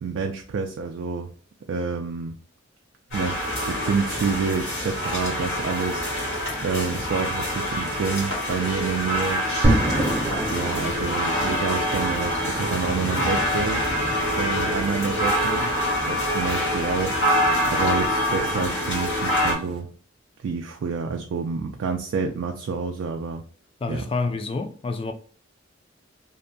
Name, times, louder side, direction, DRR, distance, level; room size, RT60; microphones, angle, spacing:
voice 1, 0.0-1.3 1.7-2.3 3.1-3.3 3.7-6.1 6.6-9.4 10.5-13.9 14.4-15.7 16.1-19.9 20.4-23.4 23.9-24.0, right 5 dB, 75° right, 0.3 m, -28 dB
sound 1, 3.1-19.5, equal, 90° left, 1.4 m, -25 dB
sound 2, 9.6-19.8, right 1 dB, 30° right, 0.6 m, -30 dB
voice 2, 23.8-25.1, left 3 dB, 30° left, 0.3 m, -28 dB
2.6 x 2.1 x 2.6 m
head